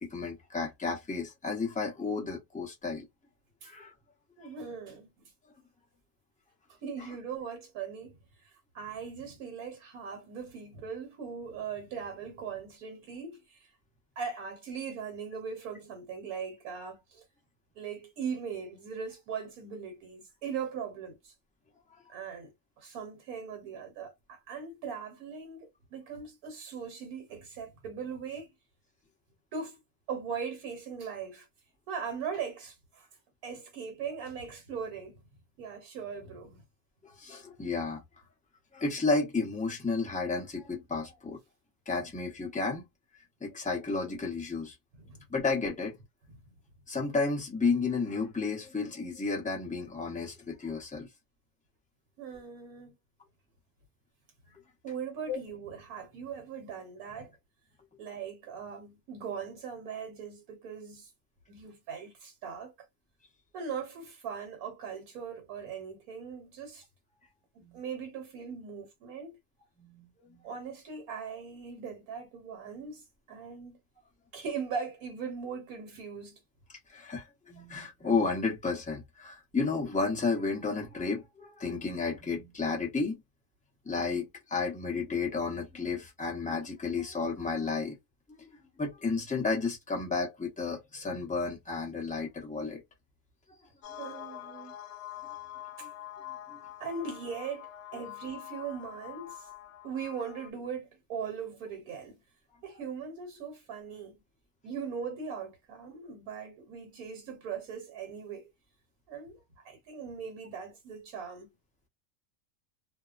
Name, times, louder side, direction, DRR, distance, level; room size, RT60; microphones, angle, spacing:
voice 1, 0.0-3.1 3.6-3.9 21.9-22.0 37.0-38.0 38.7-41.4 41.9-42.8 43.4-44.7 45.3-46.0 46.9-51.1 55.3-55.4 67.6-67.8 69.8-70.4 76.9-83.2 83.8-87.9 88.4-88.5 88.8-92.8 95.8-95.9 96.5-96.6, left 4 dB, 10° left, 0.4 m, -32 dB
voice 2, 4.4-5.1 6.8-8.2 8.7-13.7 14.2-17.2 17.7-21.3 22.1-28.5 29.5-29.8 30.1-31.5 31.9-33.1 33.4-35.2 35.6-36.6 44.9-45.2 52.2-52.9 54.8-57.3 58.0-61.1 61.5-62.7 63.5-66.9 67.5-69.4 70.4-73.8 74.3-76.4 94.0-94.7 95.8-95.9 96.8-97.7 97.9-99.5 99.8-102.2 102.6-104.2 104.6-108.5 109.1-111.5, right 6 dB, 70° right, 1.3 m, -40 dB
sound 1, 93.8-100.5, left 12 dB, 85° left, 1.1 m, -45 dB
2.8 x 2.0 x 2.4 m
omnidirectional pair, 1.6 m